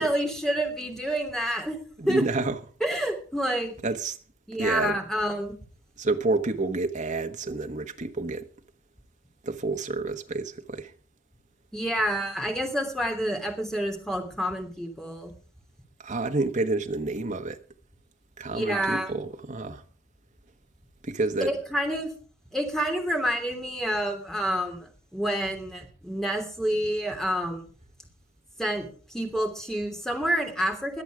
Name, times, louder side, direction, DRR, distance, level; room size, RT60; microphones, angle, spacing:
voice 1, 0.0-1.8 2.1-2.2 2.8-3.7 4.5-5.5 11.7-15.3 18.5-19.1 21.4-22.1 22.5-27.6 28.6-31.0, equal, ahead, 3.0 m, -28 dB
voice 2, 2.0-2.6 3.8-4.2 4.6-5.0 6.0-8.5 9.4-10.9 16.0-17.6 18.4-19.8 21.0-21.5, right 3 dB, 35° right, 1.3 m, -29 dB
22.0 x 8.2 x 4.9 m
head